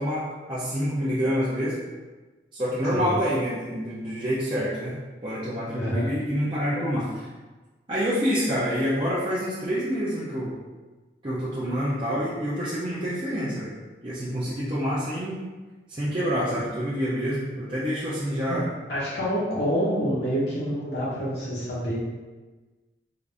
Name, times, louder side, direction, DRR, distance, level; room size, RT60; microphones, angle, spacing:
voice 1, 0.0-1.8 2.5-7.3 7.9-10.6 11.2-13.7 14.0-15.4 15.9-18.7, equal, 30° right, -10 dB, 0.6 m, -27 dB
voice 2, 5.7-6.1 18.5-22.0, equal, 70° left, -8 dB, 1.3 m, -27 dB
3.7 x 2.6 x 3.4 m, 1.3 s
head